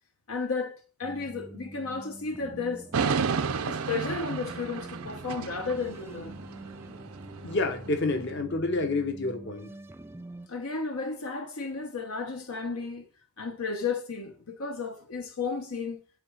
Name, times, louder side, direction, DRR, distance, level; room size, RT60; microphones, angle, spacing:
voice 1, 0.3-2.9 3.6-6.3 8.1-8.3 10.5-13.1 13.4-16.0, left 4 dB, 75° left, 0.9 m, -33 dB
sound 1, 1.0-10.5, right 1 dB, 10° right, 0.3 m, -46 dB
sound 2, 2.9-8.3, right 5 dB, 80° right, 0.6 m, -33 dB
voice 2, 7.4-9.7, left 3 dB, 55° left, 1.1 m, -29 dB
8.3 x 4.8 x 6.3 m
head